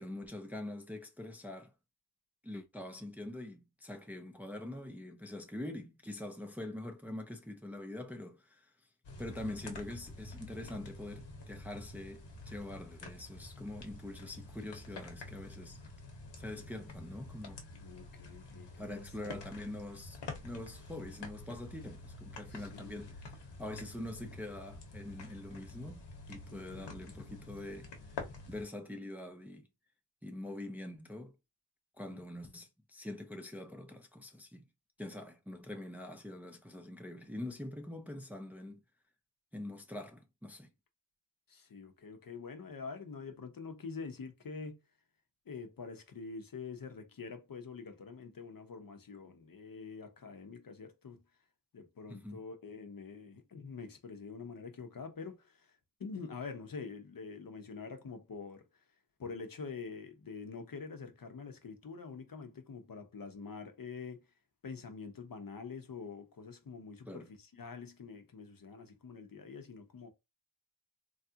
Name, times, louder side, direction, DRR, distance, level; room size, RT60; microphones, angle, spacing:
voice 1, 0.0-1.7 2.4-8.7 9.2-15.8 16.4-17.6 18.8-29.7 30.2-31.4 32.0-34.7 35.0-38.8 39.5-40.7 52.1-52.4 67.1-67.3, left 1 dB, 5° right, 0.6 m, -44 dB
sound 1, 9.0-28.6, left 3 dB, 65° left, 1.1 m, -48 dB
voice 2, 17.7-19.4 22.5-23.1 26.5-26.9 32.1-32.2 41.5-44.8 45.5-51.2 51.7-58.7 59.2-64.2 64.6-70.1, left 5 dB, 50° left, 0.8 m, -46 dB
3.3 x 2.4 x 2.8 m
cardioid pair, 65°, 45 cm